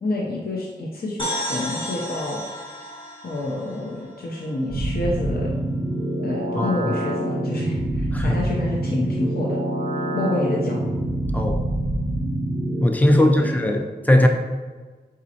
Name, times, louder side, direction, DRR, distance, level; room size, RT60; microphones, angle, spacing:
voice 1, 0.0-2.4 3.2-5.5 6.2-9.6 10.1-10.8 13.1-13.6, left 2 dB, 55° left, -3 dB, 0.6 m, -28 dB
sound 1, 1.2-4.8, equal, 30° left, 0.9 m, -33 dB
sound 2, 4.7-12.9, right 1 dB, 40° right, 0.6 m, -26 dB
voice 2, 6.6-6.9 8.1-8.4 11.3-11.6 12.8-14.3, left 1 dB, 10° left, 3 dB, 0.5 m, -19 dB
4.1 x 3.8 x 2.8 m, 1.4 s
wide cardioid pair, 70°, 18 cm